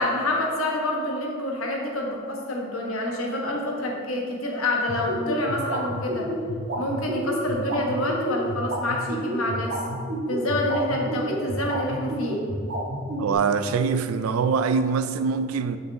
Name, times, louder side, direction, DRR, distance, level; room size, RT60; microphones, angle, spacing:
voice 1, 0.0-6.3 6.8-9.8 10.3-12.4, left 1 dB, 80° left, 1.2 m, -27 dB
sound 1, 4.9-13.3, right 1 dB, 55° right, 1.5 m, -30 dB
voice 2, 13.2-15.8, right 5 dB, 85° right, 0.4 m, -23 dB
6.5 x 6.5 x 3.4 m
head